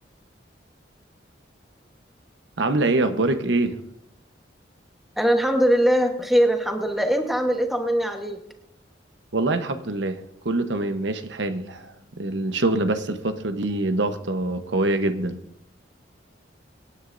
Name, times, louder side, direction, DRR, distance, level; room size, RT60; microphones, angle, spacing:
voice 1, 2.6-3.8 9.3-15.4, right 2 dB, 80° right, 8 dB, 1.0 m, -24 dB
voice 2, 5.2-8.4, equal, ahead, 3 dB, 1.2 m, -21 dB
25.0 x 9.9 x 2.6 m, 0.81 s
head